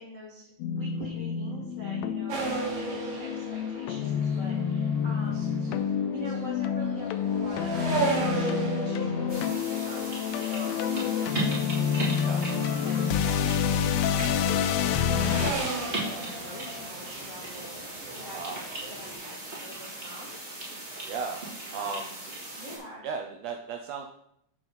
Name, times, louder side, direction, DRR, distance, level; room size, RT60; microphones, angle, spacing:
voice 1, 0.0-5.6 5.9-11.6 12.7-14.7 15.2-18.6 18.9-20.4 21.7-22.1 22.5-23.1, left 1 dB, 35° left, -6 dB, 1.5 m, -45 dB
sound 1, 0.6-15.5, left 7 dB, 85° left, 1.5 m, -28 dB
sound 2, 2.3-12.0 12.4-14.1 14.4-19.1, right 3 dB, 55° right, 2.4 m, -36 dB
sound 3, 9.3-22.8, right 2 dB, 25° right, 1.7 m, -38 dB
voice 2, 18.3-18.6 21.1-21.4 21.7-22.2 23.0-24.0, right 5 dB, 80° right, 4 dB, 1.6 m, -35 dB
7.1 x 4.7 x 5.7 m, 0.73 s
omnidirectional pair, 3.6 m